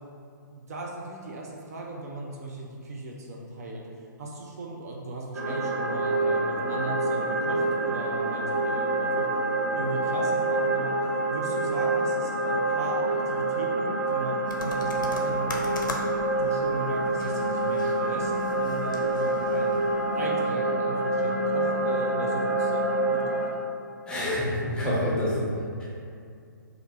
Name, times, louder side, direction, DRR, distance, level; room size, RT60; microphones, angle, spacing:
voice 1, 0.5-9.3 9.7-10.9 11.3-16.0 16.3-19.8 20.1-23.5, right 2 dB, 50° right, -2 dB, 0.4 m, -37 dB
sound 1, 5.3-23.5, right 2 dB, 65° right, 0.9 m, -27 dB
sound 2, 14.5-20.3, left 2 dB, 65° left, 0.5 m, -40 dB
voice 2, 24.1-25.5, left 1 dB, 10° left, -8 dB, 0.7 m, -27 dB
3.1 x 2.4 x 3.0 m, 2.4 s
figure-of-eight pair, 130°, 11 cm